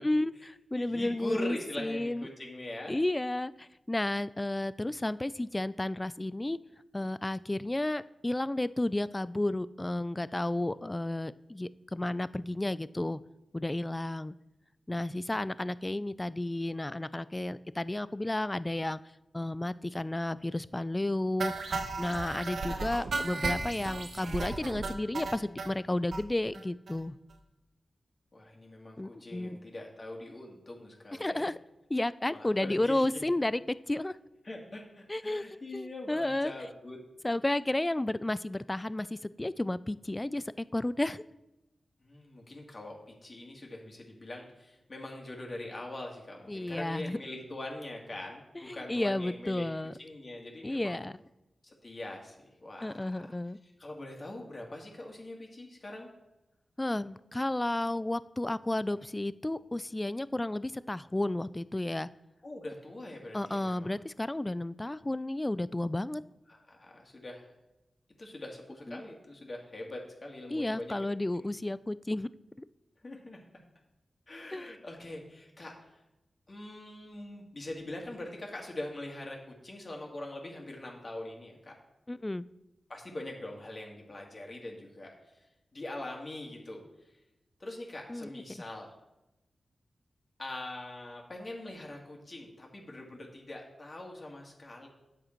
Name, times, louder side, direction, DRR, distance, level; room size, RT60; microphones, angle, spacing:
voice 1, 0.0-2.3 2.9-6.6 6.9-13.2 13.5-14.3 14.9-19.0 19.3-27.2 29.0-29.6 31.1-31.6 31.9-34.2 35.1-35.4 35.7-36.5 37.2-41.2 46.5-47.2 48.6-49.9 50.6-51.2 52.8-53.6 56.8-62.1 63.3-66.2 68.9-69.0 70.5-72.3 74.5-74.8 82.1-82.4 88.1-88.4, left 1 dB, 20° left, 17 dB, 0.3 m, -32 dB
voice 2, 0.7-2.9 10.3-10.8 28.3-31.5 32.3-33.1 34.4-37.0 42.0-49.7 50.0-51.0 51.6-53.3 53.8-56.1 62.4-63.9 66.5-67.5 68.2-70.9 71.3-71.5 73.0-73.4 74.3-75.7 76.5-81.7 82.9-85.4 85.7-86.8 87.6-88.9 90.4-94.9, left 1 dB, 40° left, 0 dB, 2.2 m, -43 dB
sound 1, 21.4-25.7 26.1-26.2 26.5-26.6 26.9-27.0 27.3-27.4, right 3 dB, 75° right, 0.9 m, -35 dB
8.7 x 7.8 x 4.5 m, 0.95 s
wide cardioid pair, 80°, 0 cm